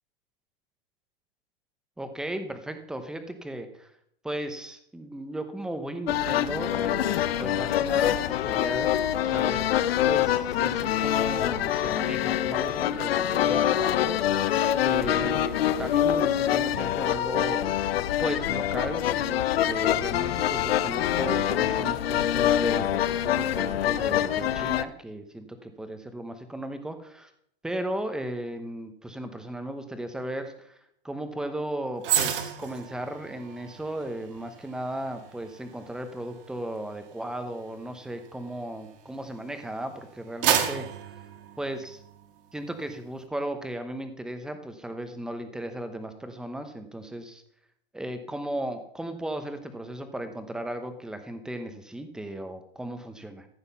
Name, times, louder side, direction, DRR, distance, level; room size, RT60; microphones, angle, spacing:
voice 1, 2.0-3.9 4.2-9.0 9.2-9.7 10.1-14.5 14.8-17.8 18.2-27.3 27.6-30.8 31.0-40.9 41.6-42.0 42.5-47.4 47.9-53.5, right 1 dB, ahead, 8 dB, 0.9 m, -36 dB
sound 1, 6.1-24.8, left 11 dB, 85° left, 0.8 m, -25 dB
sound 2, 32.0-39.4 39.9-42.3 42.6-42.8, right 9 dB, 65° right, 1.8 m, -32 dB
14.5 x 8.0 x 5.5 m, 0.70 s
supercardioid pair, 160°, 29 cm